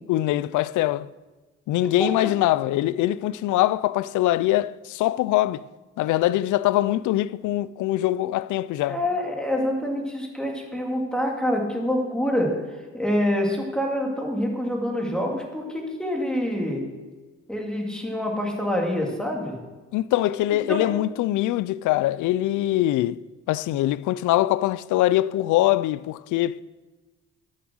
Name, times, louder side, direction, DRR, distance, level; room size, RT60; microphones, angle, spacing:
voice 1, 0.1-1.1 1.7-5.6 6.0-9.0 19.9-23.2 23.5-26.6, left 15 dB, 80° left, 0.4 m, -23 dB
voice 2, 1.8-2.4 8.9-16.9 17.5-19.6 20.5-21.0, left 1 dB, 5° left, 2.6 m, -26 dB
12.0 x 7.4 x 6.3 m
cardioid pair, 90°, 30 cm